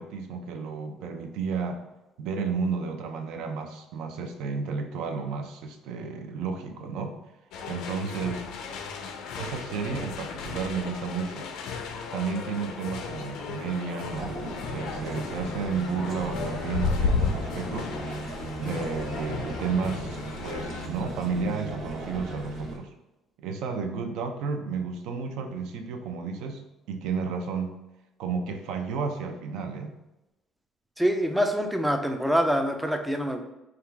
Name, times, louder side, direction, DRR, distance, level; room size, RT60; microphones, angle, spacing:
voice 1, 0.0-1.8 2.2-7.2 7.7-8.4 9.4-11.4 12.1-14.4 14.7-17.9 18.6-22.9 23.4-27.8 28.2-29.9, right 5 dB, 70° right, 6 dB, 0.5 m, -32 dB
sound 1, 7.5-20.9, left 5 dB, 70° left, 0.5 m, -34 dB
sound 2, 14.1-22.8, right 2 dB, 45° right, 0.8 m, -37 dB
voice 2, 31.0-33.4, equal, 5° right, 5 dB, 0.3 m, -25 dB
3.7 x 2.3 x 4.5 m, 0.95 s
cardioid pair, 160°, 0 cm